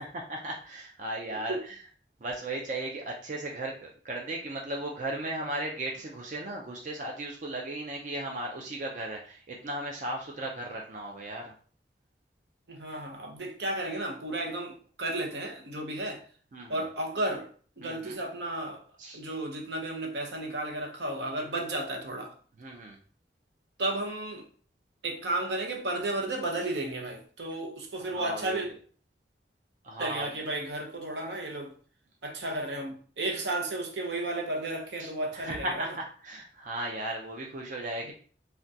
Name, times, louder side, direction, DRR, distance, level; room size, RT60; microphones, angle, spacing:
voice 1, 0.0-1.8 2.2-11.5 16.5-16.8 17.8-18.2 19.0-19.2 22.6-23.0 28.0-28.7 29.8-30.3 34.9-38.1, right 1 dB, 45° right, 0.4 m, -36 dB
voice 2, 12.7-16.2 16.7-17.5 17.8-18.8 19.1-22.3 23.8-24.5 25.0-28.7 30.0-31.7 32.2-35.9 38.1-38.2, right 2 dB, 75° right, 0.7 m, -33 dB
3.6 x 2.2 x 2.6 m
head